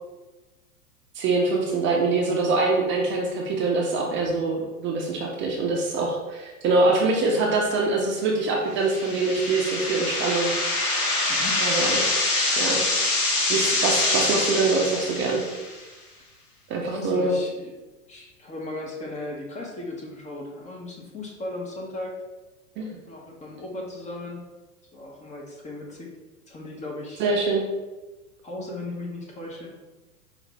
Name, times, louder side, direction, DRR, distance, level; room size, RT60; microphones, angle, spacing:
voice 1, 1.1-10.5 11.6-12.0 12.6-12.8 13.5-15.4 16.7-17.4 22.8-22.9 27.2-27.7, right 3 dB, 25° right, -1 dB, 0.5 m, -24 dB
sound 1, 8.8-15.8, left 2 dB, 75° left, 1.2 m, -25 dB
voice 2, 11.3-11.6 16.8-17.7 18.1-22.2 23.1-24.5 24.9-26.1 26.5-27.2 28.4-29.7, left 2 dB, 15° left, -1 dB, 0.7 m, -36 dB
4.8 x 2.5 x 3.2 m, 1.1 s
hypercardioid pair, 100°, 45 cm